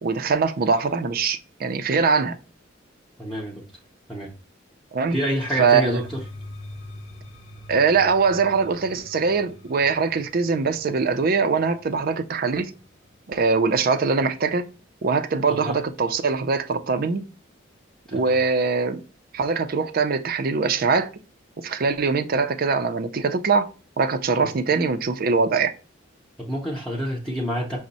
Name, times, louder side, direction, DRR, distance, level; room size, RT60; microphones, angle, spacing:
voice 1, 0.0-2.4 4.9-5.2 5.6-6.0 7.7-12.7 13.3-14.7 15.0-17.2 18.1-19.0 19.3-21.1 21.6-23.7 24.0-25.7, right 4 dB, 50° right, 0.4 m, -22 dB
voice 2, 3.2-3.6 4.1-4.3 5.1-6.2 15.5-15.8 18.1-18.3 24.3-24.5 26.4-27.8, equal, 5° left, 0.7 m, -28 dB
sound 1, 5.1-14.9, left 1 dB, 85° left, 0.8 m, -45 dB
6.0 x 2.1 x 3.9 m
head